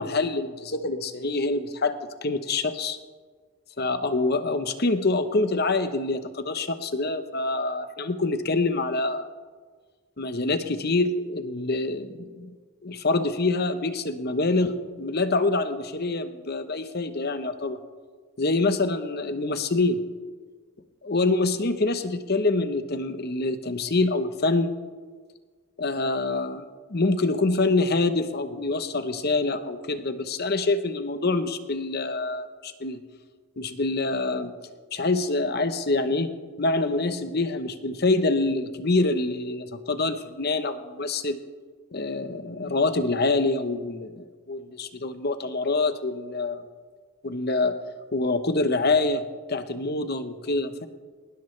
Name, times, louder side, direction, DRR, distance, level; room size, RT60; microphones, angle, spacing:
voice 1, 0.0-3.0 3.8-9.2 10.2-12.5 12.8-17.8 18.4-20.0 21.0-24.7 25.8-33.0 33.6-34.5 34.9-36.3 36.6-41.4 41.9-46.6 47.2-47.8 48.1-49.2 49.5-50.9, left 3 dB, 45° left, 10 dB, 0.9 m, -26 dB
19.5 x 19.0 x 3.3 m, 1.5 s
head